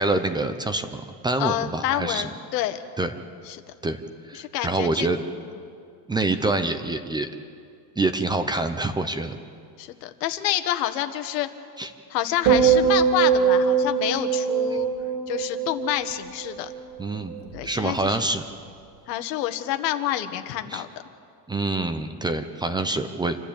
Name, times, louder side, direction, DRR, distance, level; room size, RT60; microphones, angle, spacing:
voice 1, 0.0-2.3 3.0-3.1 3.8-4.0 4.3-5.2 6.1-7.3 8.0-9.4 11.8-11.9 17.0-17.4 17.6-18.4 20.7-20.8 21.5-23.4, right 2 dB, 10° right, 9 dB, 0.7 m, -26 dB
voice 2, 1.4-2.8 3.4-3.6 4.3-5.1 9.8-11.5 12.1-14.9 15.3-16.7 17.5-18.2 19.1-20.9, left 12 dB, 85° left, 9 dB, 1.6 m, -28 dB
sound 1, 12.5-16.8 17.1-17.6, right 7 dB, 60° right, 2.7 m, -22 dB
28.0 x 12.5 x 8.6 m, 2.3 s
supercardioid pair, 145°, 48 cm